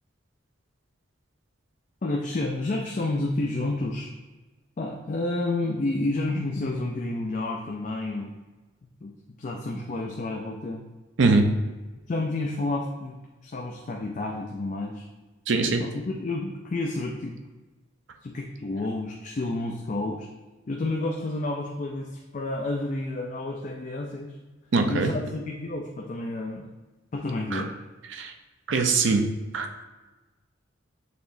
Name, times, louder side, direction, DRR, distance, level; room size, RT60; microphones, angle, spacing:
voice 1, 2.0-4.1 4.8-8.4 9.0-9.1 9.4-10.8 12.1-13.2 13.4-15.1 15.8-17.4 18.2-20.3 20.7-24.4 24.9-26.7 27.1-27.7, left 2 dB, 40° left, 1 dB, 0.4 m, -30 dB
voice 2, 15.5-15.8 24.7-25.1 27.5-27.6 28.1-28.3 28.7-29.2 29.5-29.8, right 3 dB, 70° right, 5 dB, 0.5 m, -22 dB
6.7 x 2.9 x 2.6 m, 1.2 s
head